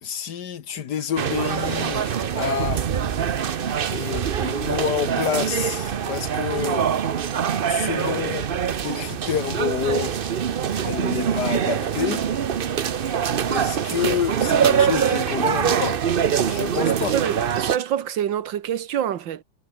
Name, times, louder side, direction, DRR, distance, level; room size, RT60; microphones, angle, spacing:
voice 1, 0.0-2.8 3.9-6.9 7.7-10.2 10.5-12.2 13.1-13.2 13.5-17.2, left 8 dB, 65° left, 1.6 m, -28 dB
sound 1, 1.2-17.8, right 8 dB, 60° right, 0.5 m, -24 dB
voice 2, 17.1-19.4, right 10 dB, 80° right, 1.9 m, -26 dB
omnidirectional pair, 2.0 m